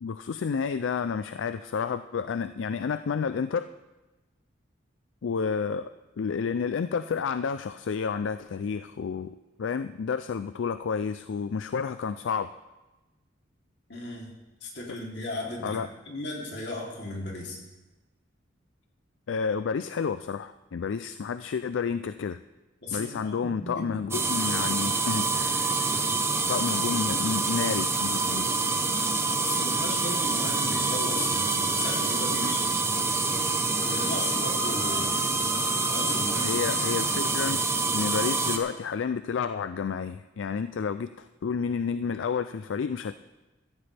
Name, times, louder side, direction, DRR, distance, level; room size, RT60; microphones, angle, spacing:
voice 1, 0.0-3.7 5.2-12.5 15.6-15.9 19.3-22.4 22.9-26.0 26.5-28.5 36.4-37.6 37.9-43.1, left 6 dB, 80° left, 12 dB, 0.4 m, -30 dB
voice 2, 13.9-14.3 14.6-15.8 16.0-17.6 22.8-24.1 29.4-32.8 33.8-35.3 35.9-36.6, left 2 dB, 60° left, -1 dB, 3.1 m, -36 dB
sound 1, 24.1-38.6, right 3 dB, 15° right, 0.9 m, -26 dB
16.0 x 14.0 x 3.4 m, 1.1 s
head